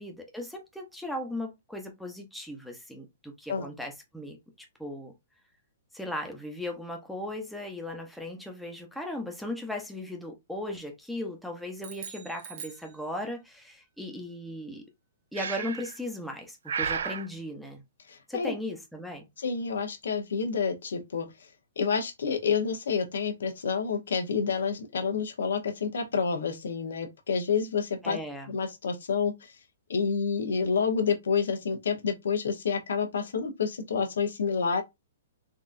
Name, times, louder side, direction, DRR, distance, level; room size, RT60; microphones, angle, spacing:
voice 1, 0.0-5.1 5.9-14.8 15.3-17.8 18.3-19.3 28.0-28.5, left 1 dB, ahead, 0.7 m, -37 dB
sound 1, 11.8-13.6, right 7 dB, 45° right, 0.9 m, -44 dB
Breathing, 15.3-16.0 16.7-17.3, right 6 dB, 80° right, 0.4 m, -32 dB
voice 2, 18.1-18.5 19.4-21.5 21.8-28.2 28.5-29.5 29.9-34.8, left 6 dB, 85° left, 0.8 m, -29 dB
3.8 x 2.4 x 2.5 m
hypercardioid pair, 155°, 0 cm